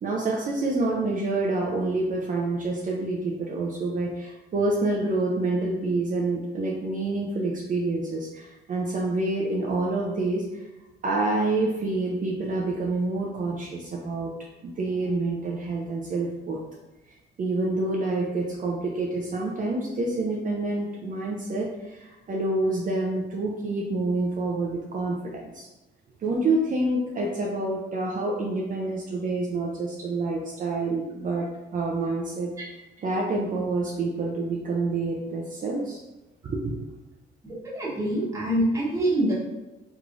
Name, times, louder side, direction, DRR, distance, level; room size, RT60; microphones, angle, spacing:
voice 1, 0.0-10.6 11.0-14.3 14.6-16.6 17.4-25.7 26.2-31.5 31.7-32.5 33.0-36.0 36.4-36.8, right 2 dB, 45° right, -2 dB, 0.5 m, -27 dB
voice 2, 37.6-39.3, right 1 dB, 15° right, -7 dB, 1.2 m, -25 dB
3.4 x 3.1 x 2.5 m, 1.0 s
cardioid pair, 90°, 20 cm